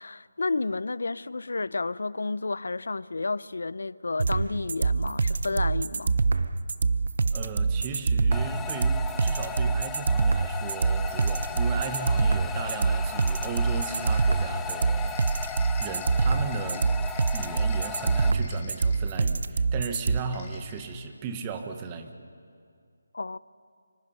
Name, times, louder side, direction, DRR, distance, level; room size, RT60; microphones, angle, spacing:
voice 1, 0.0-6.2 23.1-23.4, left 3 dB, 75° left, 0.6 m, -31 dB
sound 1, 4.2-20.2, right 4 dB, 55° right, 0.8 m, -25 dB
voice 2, 7.3-15.2 15.8-16.9 17.3-22.1, right 5 dB, 15° right, 1.2 m, -36 dB
sound 2, 8.3-18.3, left 7 dB, 5° left, 0.5 m, -37 dB
sound 3, 10.8-11.9 13.6-19.5 20.1-21.1, left 5 dB, 25° left, 2.8 m, -50 dB
25.5 x 25.5 x 5.5 m
figure-of-eight pair, 170°, 0 cm